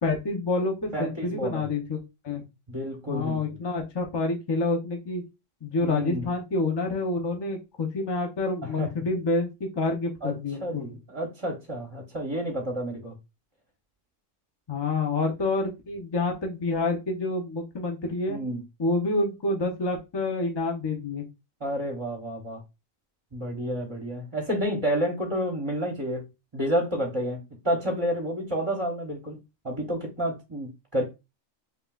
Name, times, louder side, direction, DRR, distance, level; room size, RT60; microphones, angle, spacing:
voice 1, 0.0-2.4 3.1-5.2 5.6-10.9 14.7-18.4 18.8-21.2, left 3 dB, 25° left, 0.6 m, -28 dB
voice 2, 0.9-1.7 2.7-3.6 5.8-6.3 8.6-8.9 10.2-10.3 10.6-13.2 18.3-18.6 21.6-22.6 23.3-26.2 26.5-31.0, equal, 25° right, 0.8 m, -30 dB
5.7 x 2.7 x 2.4 m
omnidirectional pair, 1.4 m